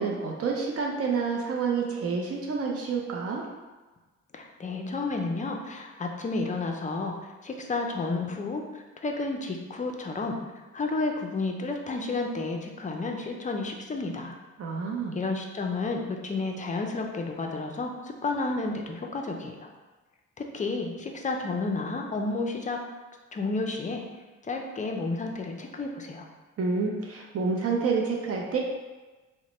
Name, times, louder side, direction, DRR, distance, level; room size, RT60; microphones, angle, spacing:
voice 1, 0.0-3.5 14.6-15.2 26.6-28.6, right 5 dB, 50° right, -1 dB, 0.6 m, -28 dB
voice 2, 4.3-7.1 7.4-10.4 10.7-14.4 15.1-19.7 20.4-22.8 23.3-24.0 24.4-26.3, left 3 dB, 25° left, 2 dB, 0.5 m, -31 dB
2.9 x 2.1 x 4.1 m, 1.2 s
cardioid pair, 90°, 30 cm